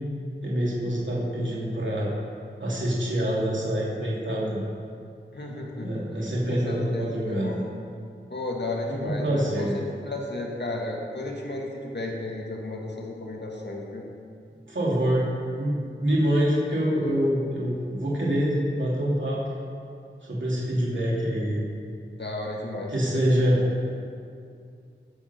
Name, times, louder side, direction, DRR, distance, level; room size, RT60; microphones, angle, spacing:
voice 1, 0.4-2.1 2.6-4.6 5.8-7.6 8.9-9.8 14.7-15.2 15.6-19.4 20.3-21.6 22.9-23.6, equal, 70° right, -6 dB, 2.9 m, -25 dB
voice 2, 5.3-6.0 6.5-7.6 8.3-14.0 22.2-22.9 23.4-23.7, left 2 dB, 60° left, -1 dB, 1.8 m, -33 dB
11.5 x 6.9 x 5.8 m, 2.4 s
wide cardioid pair, 60°, 20 cm